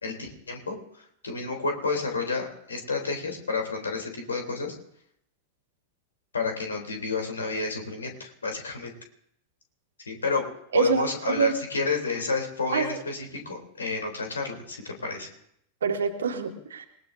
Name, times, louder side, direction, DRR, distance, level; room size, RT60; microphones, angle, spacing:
voice 1, 0.0-0.8 1.2-4.7 6.3-8.9 10.1-10.4 10.7-15.3, left 4 dB, 70° left, 3 dB, 3.4 m, -30 dB
voice 2, 10.7-11.5 12.7-13.0 15.8-16.9, right 6 dB, 65° right, 4 dB, 2.0 m, -26 dB
27.5 x 18.5 x 2.7 m, 0.72 s
figure-of-eight pair, 90°, 0 cm